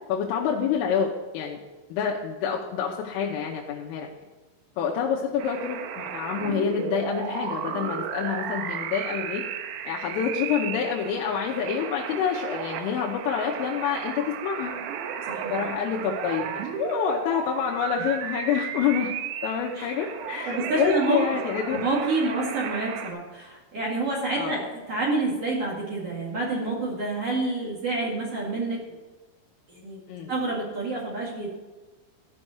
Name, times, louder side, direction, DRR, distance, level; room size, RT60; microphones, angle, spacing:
voice 1, 0.1-1.6 1.9-4.1 4.8-9.4 9.9-14.7 15.5-19.1 19.4-21.8 24.4-24.6 30.1-30.3, left 7 dB, 85° left, -1 dB, 3.4 m, -27 dB
sound 1, 5.4-23.1, right 8 dB, 80° right, 3.4 m, -34 dB
voice 2, 15.3-15.7 19.8-19.9 20.5-21.2 21.7-28.8 29.7-30.0 30.3-31.5, right 2 dB, 50° right, -4 dB, 1.9 m, -28 dB
15.0 x 5.4 x 6.4 m, 1.2 s
omnidirectional pair, 5.8 m